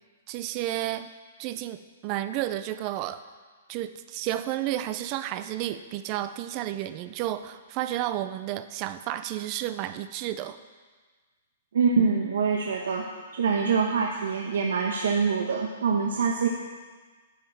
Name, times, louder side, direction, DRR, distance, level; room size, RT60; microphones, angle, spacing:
voice 1, 0.3-1.1 1.4-3.2 3.7-10.6, right 13 dB, 25° right, 12 dB, 0.4 m, -31 dB
voice 2, 11.7-13.1 13.3-16.5, right 5 dB, 80° right, 1 dB, 1.0 m, -25 dB
10.0 x 5.6 x 7.5 m, 1.4 s
hypercardioid pair, 175°, 0 cm